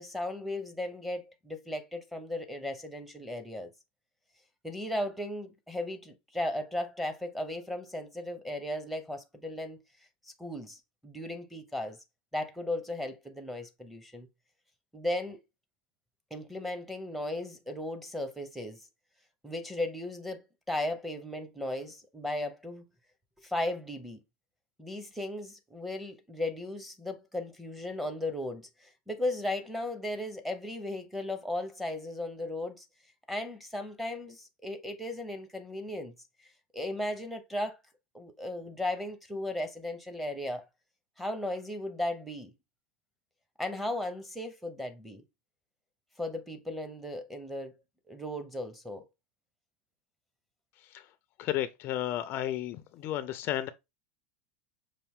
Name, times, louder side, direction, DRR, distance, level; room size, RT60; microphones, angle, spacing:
voice 1, 0.0-3.7 4.6-9.8 10.4-12.0 12.3-14.3 14.9-15.4 16.3-18.8 19.4-22.9 23.4-24.2 24.8-32.8 33.3-36.1 36.7-37.8 38.1-40.6 41.2-42.5 43.6-45.2 46.2-47.7 48.1-49.0, left 1 dB, ahead, 0.7 m, -36 dB
voice 2, 51.4-53.7, left 12 dB, 40° left, 0.4 m, -32 dB
5.6 x 2.5 x 3.6 m
supercardioid pair, 145°, 6 cm